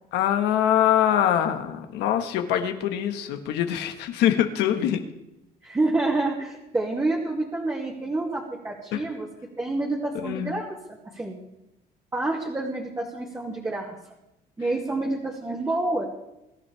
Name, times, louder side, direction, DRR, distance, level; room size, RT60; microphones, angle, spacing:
voice 1, 0.1-5.0 8.9-9.0 10.1-10.6, left 10 dB, 90° left, 6 dB, 1.7 m, -24 dB
voice 2, 5.6-9.3 9.6-10.7 11.1-11.4 12.1-14.0 14.6-16.0, right 2 dB, 15° right, -3 dB, 2.5 m, -28 dB
23.5 x 11.5 x 3.5 m, 0.89 s
cardioid pair, 110°, 17 cm